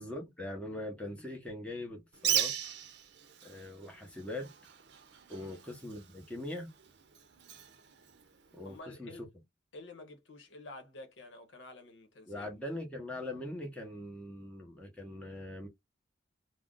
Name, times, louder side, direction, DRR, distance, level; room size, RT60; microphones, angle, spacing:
voice 1, 0.0-2.5 3.4-4.5 5.3-6.7 8.5-9.3 12.3-15.7, left 1 dB, 5° left, 0.8 m, -41 dB
Bird, 2.1-8.8, right 9 dB, 65° right, 0.6 m, -38 dB
voice 2, 8.6-9.2 9.7-12.5, left 2 dB, 85° left, 0.8 m, -50 dB
2.4 x 2.0 x 3.6 m
head